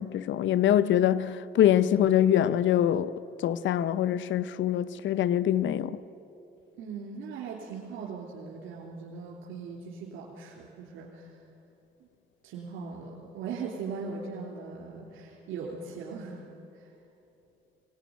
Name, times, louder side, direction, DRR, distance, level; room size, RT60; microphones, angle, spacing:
voice 1, 0.0-6.0, left 11 dB, 70° left, 0.6 m, -24 dB
voice 2, 6.8-11.4 12.4-16.4 16.7-16.9, right 5 dB, 90° right, 3.4 m, -39 dB
23.5 x 18.5 x 9.4 m
cardioid pair, 90°, 20 cm